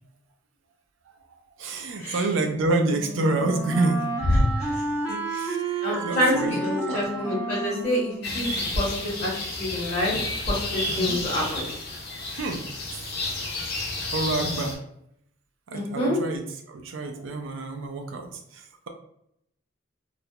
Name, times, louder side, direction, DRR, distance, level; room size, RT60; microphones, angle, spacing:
voice 1, 1.3-4.1 5.3-7.1 10.9-11.2 12.3-12.6 12.9-13.0 14.1-14.8 15.7-18.9, right 2 dB, 70° right, 5 dB, 0.4 m, -28 dB
Wind instrument woodwind instrument, 2.4-9.2, right 2 dB, 5° right, 0.4 m, -32 dB
voice 2, 4.3-4.8 5.3-5.4 5.8-8.5 8.7-9.3 9.6-10.2 10.5-11.6 15.7-16.2, left 1 dB, 30° left, -9 dB, 0.9 m, -26 dB
sound 1, 8.2-14.7, left 2 dB, 55° left, 0.6 m, -31 dB
2.4 x 2.0 x 2.6 m, 0.74 s
head